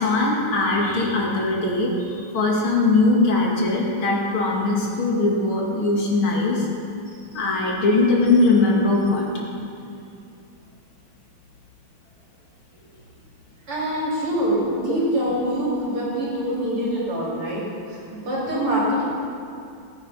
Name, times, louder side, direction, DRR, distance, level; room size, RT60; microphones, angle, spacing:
voice 1, 0.0-6.6 7.3-9.3, left 3 dB, 70° left, -2 dB, 3.2 m, -20 dB
voice 2, 13.7-17.6 17.9-19.0, right 1 dB, 90° right, -6 dB, 4.5 m, -24 dB
19.5 x 8.9 x 5.3 m, 2.5 s
omnidirectional pair, 2.4 m